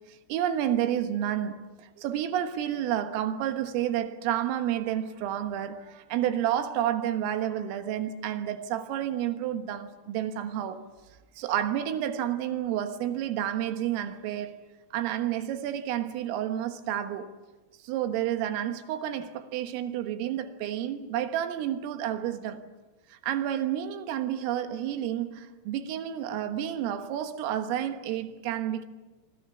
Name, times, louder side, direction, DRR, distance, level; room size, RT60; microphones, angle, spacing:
voice 1, 0.1-10.8 11.4-14.6 14.9-17.3 17.8-22.6 23.1-28.9, right 11 dB, 80° right, 3.9 m, -30 dB
26.5 x 24.5 x 7.1 m
omnidirectional pair, 5.9 m